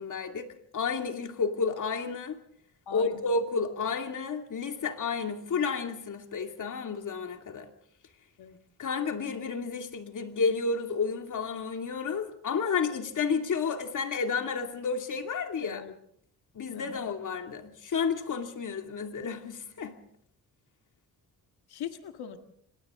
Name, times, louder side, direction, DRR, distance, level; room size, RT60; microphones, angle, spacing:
voice 1, 0.0-2.4 2.9-7.7 8.8-15.9 16.5-20.0, left 5 dB, 55° left, 2.5 m, -31 dB
voice 2, 2.9-3.3 8.4-8.6 15.6-15.9 16.7-17.0 21.7-22.4, left 9 dB, 90° left, 1.9 m, -40 dB
27.5 x 25.5 x 3.7 m
cardioid pair, 120°, 37 cm